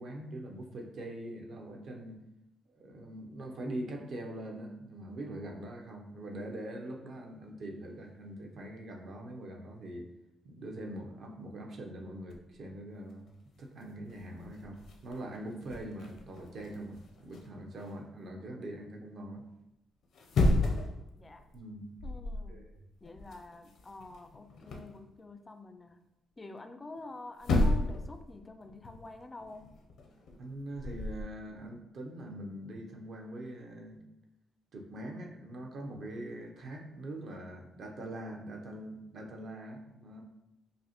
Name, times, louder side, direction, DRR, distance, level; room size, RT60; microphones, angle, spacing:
voice 1, 0.0-2.2 2.7-10.1 10.4-13.3 13.6-14.8 15.0-19.5 21.5-21.9 22.5-22.8 30.4-34.0 34.7-40.2, right 1 dB, 60° right, 2 dB, 0.7 m, -43 dB
sound 1, 12.3-12.6 13.3-13.4 13.6-17.9 20.0-21.0 21.4-21.6 22.0-22.5 22.8-25.0 27.0-27.1 27.4-28.1 28.4-31.2, left 2 dB, 70° left, 0.6 m, -33 dB
voice 2, 20.8-21.4 22.0-22.6 23.0-26.0 26.4-29.7, left 2 dB, 20° left, 7 dB, 0.3 m, -48 dB
5.1 x 2.1 x 2.9 m, 0.90 s
cardioid pair, 90°, 0 cm